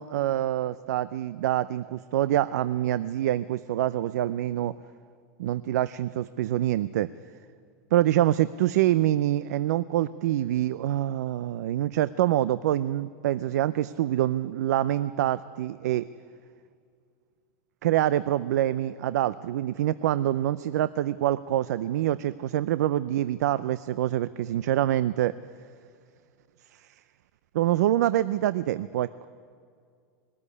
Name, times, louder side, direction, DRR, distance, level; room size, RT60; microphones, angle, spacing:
voice 1, 0.0-4.8 5.4-7.1 7.9-16.1 17.8-25.3 26.8-26.9 27.5-29.3, right 13 dB, 80° right, 16 dB, 0.4 m, -26 dB
20.0 x 13.5 x 9.8 m, 2.2 s
supercardioid pair, 135°, 9 cm